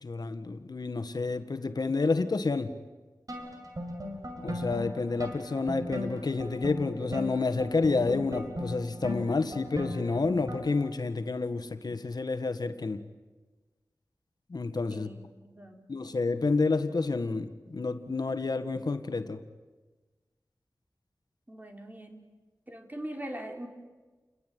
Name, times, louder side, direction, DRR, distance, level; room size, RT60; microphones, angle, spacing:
voice 1, 0.0-2.7 4.4-13.0 14.5-15.1 15.9-19.4, left 3 dB, 70° left, 9 dB, 1.6 m, -29 dB
sound 1, 3.3-10.9, left 1 dB, 55° right, 5.6 m, -38 dB
voice 2, 14.9-15.9 21.5-22.2 22.7-23.7, right 1 dB, 25° right, 4 dB, 4.3 m, -41 dB
29.5 x 21.0 x 9.4 m, 1.3 s
wide cardioid pair, 65°, 7 cm